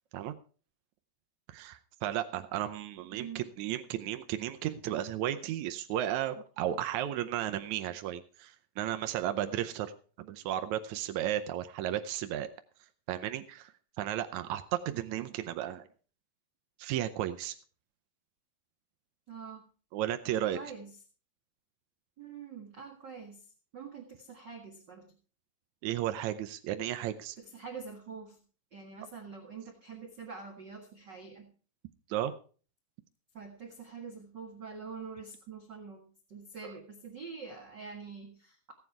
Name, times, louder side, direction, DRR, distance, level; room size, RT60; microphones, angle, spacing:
voice 1, 1.5-9.9 10.2-12.5 13.1-13.7 14.0-15.8 16.8-17.5 19.9-20.6 25.8-27.4 32.1-32.3 36.6-36.7, right 12 dB, 85° right, 9 dB, 1.6 m, -34 dB
voice 2, 3.1-3.4 19.3-19.6 20.5-20.9 22.2-25.1 27.4-28.4 28.7-31.5 33.3-38.7, right 5 dB, 45° right, 2 dB, 1.6 m, -45 dB
16.0 x 9.5 x 4.6 m, 0.40 s
omnidirectional pair, 4.3 m